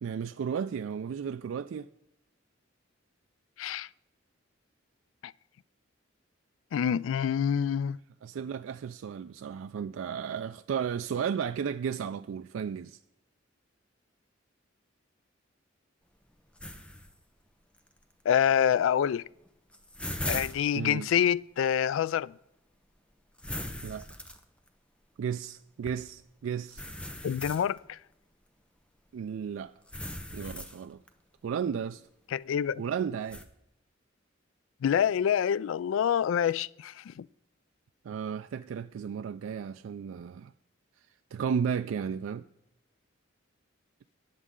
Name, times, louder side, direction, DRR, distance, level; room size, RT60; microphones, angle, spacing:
voice 1, 0.0-1.9 8.2-13.0 20.7-21.1 23.8-24.0 25.2-26.8 29.1-29.7 30.3-31.0 31.4-32.0 32.8-33.4 38.0-40.5 41.3-42.4, right 7 dB, 90° right, 0.3 m, -34 dB
voice 2, 3.6-3.9 5.2-5.3 6.7-8.0 18.3-19.2 20.3-22.3 27.2-28.0 32.3-32.8 34.8-37.3, left 8 dB, 85° left, 0.3 m, -27 dB
sound 1, 16.6-17.1 17.8-17.9 19.1-19.2 19.4-20.7 23.4-24.7 25.8-25.9 26.7-27.8 29.9-31.1 33.3-33.4, left 1 dB, 5° left, 0.8 m, -38 dB
19.0 x 7.4 x 3.7 m
head